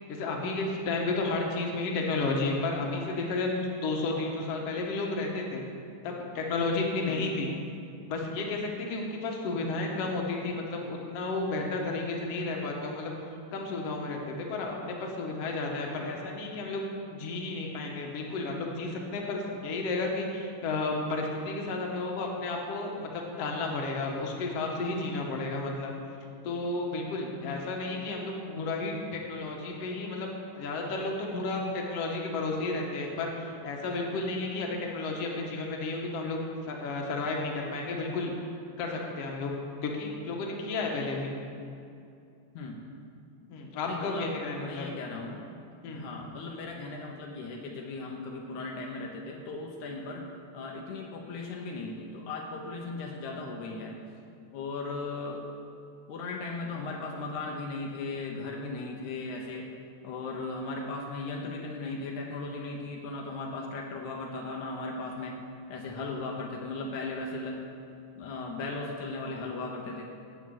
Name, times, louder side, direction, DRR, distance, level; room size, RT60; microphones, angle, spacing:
voice 1, 0.1-5.6 6.0-7.5 8.1-13.1 13.5-25.9 26.4-38.3 38.8-39.5 39.8-41.3 43.5-44.9 45.8-46.0, left 3 dB, 60° left, 0 dB, 2.1 m, -32 dB
voice 2, 43.8-45.5 45.9-54.0 54.5-55.5 56.1-59.7 60.0-65.4 65.7-67.6 68.2-70.1, left 3 dB, 80° left, 0 dB, 2.3 m, -37 dB
14.0 x 8.4 x 3.8 m, 2.5 s
omnidirectional pair, 3.4 m